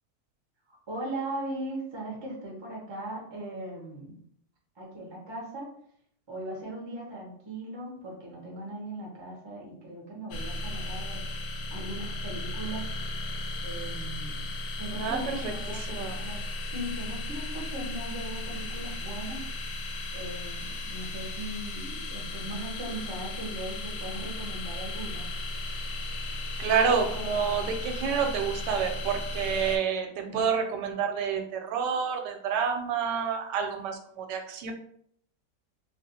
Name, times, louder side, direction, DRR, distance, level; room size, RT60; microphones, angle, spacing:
voice 1, 0.7-4.2 4.8-5.7 6.3-11.2 11.7-12.9 13.6-14.5 14.8-19.4 20.1-25.3 30.2-30.5, right 1 dB, 30° right, -2 dB, 0.5 m, -39 dB
sound 1, 10.3-29.8, left 2 dB, 85° left, 1.2 m, -35 dB
voice 2, 14.9-16.2 26.6-34.7, right 6 dB, 90° right, 5 dB, 1.2 m, -29 dB
3.4 x 2.4 x 2.7 m, 0.66 s
omnidirectional pair, 1.8 m